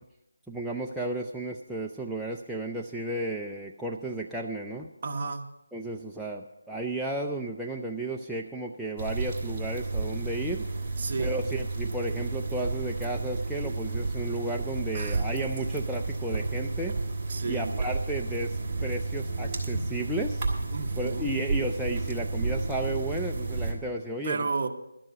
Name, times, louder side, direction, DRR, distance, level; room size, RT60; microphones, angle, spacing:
voice 1, 0.5-4.9 5.7-10.7 11.2-17.0 17.5-20.5 21.0-24.4, right 2 dB, ahead, -3 dB, 0.4 m, -33 dB
voice 2, 5.0-5.5 11.0-11.4 14.9-15.5 17.3-17.8 20.7-21.3 24.2-24.7, right 4 dB, 35° right, 4 dB, 1.0 m, -33 dB
sound 1, 9.0-23.7, right 3 dB, 20° right, 1.9 m, -31 dB
12.0 x 7.7 x 8.0 m, 0.89 s
figure-of-eight pair, 170°, 0 cm